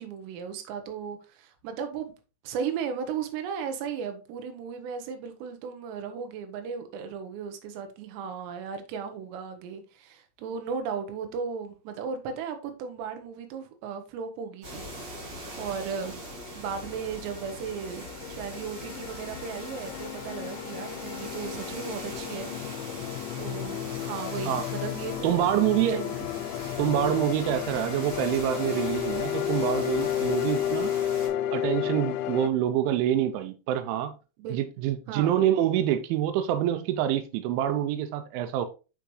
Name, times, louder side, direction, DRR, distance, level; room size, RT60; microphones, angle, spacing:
voice 1, 0.0-2.1 2.4-15.3 15.6-16.2 16.5-22.5 22.9-25.4 25.8-26.2 34.4-34.6 35.1-35.4, right 6 dB, 75° right, 3.0 m, -36 dB
sound 1, 14.6-31.3, right 1 dB, 40° right, 3.6 m, -41 dB
sound 2, 16.3-32.5, left 11 dB, 85° left, 2.6 m, -32 dB
voice 2, 25.2-26.0 26.8-30.9 31.5-34.1 34.5-38.7, right 11 dB, 90° right, 3.1 m, -26 dB
8.9 x 4.6 x 3.1 m
omnidirectional pair, 5.4 m